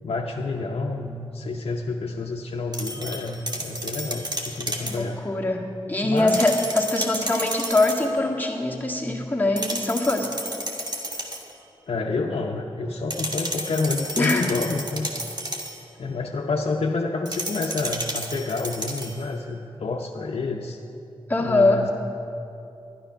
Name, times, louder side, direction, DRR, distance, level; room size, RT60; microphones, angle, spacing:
voice 1, 0.0-5.2 6.0-6.6 11.9-15.1 16.0-20.8 21.4-21.9, left 3 dB, 70° left, 0 dB, 0.7 m, -28 dB
sound 1, 2.7-5.0 6.2-8.1 9.6-11.5 13.1-15.8 17.3-19.2, right 1 dB, 40° right, 1.5 m, -32 dB
voice 2, 4.8-10.3 14.2-14.5 21.3-21.8, left 2 dB, 15° left, -2 dB, 1.8 m, -23 dB
11.5 x 10.0 x 5.7 m, 2.7 s
cardioid pair, 45°, 10 cm